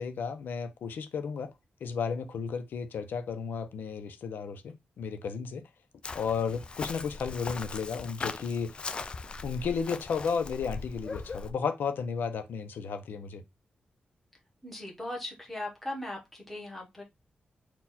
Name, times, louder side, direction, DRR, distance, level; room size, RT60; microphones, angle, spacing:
voice 1, 0.0-1.5 1.8-5.6 6.1-8.8 9.4-13.4, left 6 dB, 90° left, 0.7 m, -33 dB
Chirp tweet, 6.0-11.5, left 4 dB, 30° left, 0.3 m, -39 dB
voice 2, 14.6-17.0, left 1 dB, 5° left, 1.1 m, -39 dB
4.3 x 2.4 x 4.2 m
wide cardioid pair, 180°, 3 cm